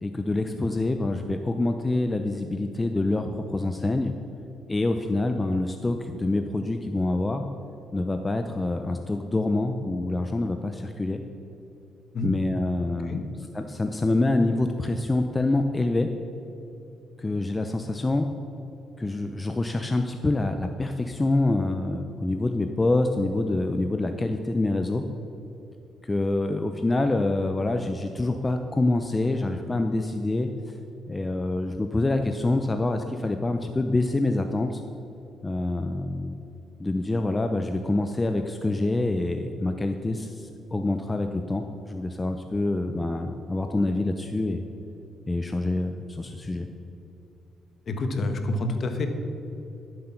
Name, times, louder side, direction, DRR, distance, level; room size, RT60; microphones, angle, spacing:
voice 1, 0.0-4.1 4.7-7.4 7.9-11.2 12.2-13.2 13.5-16.1 17.2-18.3 19.0-25.0 26.0-30.8 31.1-34.8 35.4-36.4 36.8-44.7 45.3-46.7, left 2 dB, 20° left, 6 dB, 0.6 m, -26 dB
voice 2, 47.9-49.1, left 2 dB, 50° left, 6 dB, 1.3 m, -27 dB
11.5 x 7.7 x 5.9 m, 2.9 s
cardioid pair, 90°, 0 cm